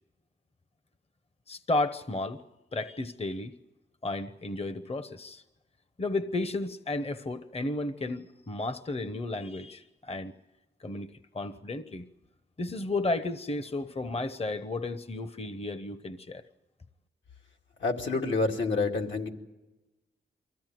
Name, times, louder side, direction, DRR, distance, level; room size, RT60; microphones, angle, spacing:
voice 1, 1.5-2.4 2.7-3.6 4.0-5.4 6.0-10.3 10.8-12.1 12.6-16.4, left 2 dB, 30° left, 11 dB, 1.0 m, -33 dB
voice 2, 17.8-19.3, left 3 dB, 75° left, 1 dB, 2.7 m, -28 dB
23.5 x 15.5 x 9.3 m, 1.1 s
cardioid pair, 55°, 19 cm